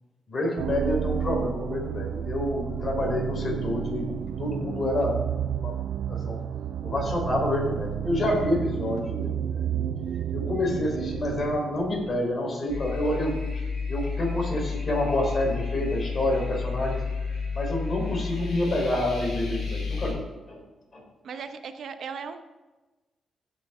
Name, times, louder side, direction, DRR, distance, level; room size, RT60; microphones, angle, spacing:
voice 1, 0.3-5.2 5.6-5.7 6.1-6.4 6.8-9.8 10.3-13.4 13.9-17.0 17.5-20.2 20.5-20.6 20.9-21.0, left 1 dB, 45° left, -1 dB, 4.0 m, -28 dB
sound 1, 0.6-12.4, right 9 dB, 90° right, 0.4 m, -31 dB
sound 2, 12.7-20.1, left 5 dB, 70° left, 3.0 m, -31 dB
voice 2, 21.2-22.4, right 6 dB, 70° right, 8 dB, 0.8 m, -37 dB
15.5 x 6.4 x 3.7 m, 1.2 s
cardioid pair, 80°, 0 cm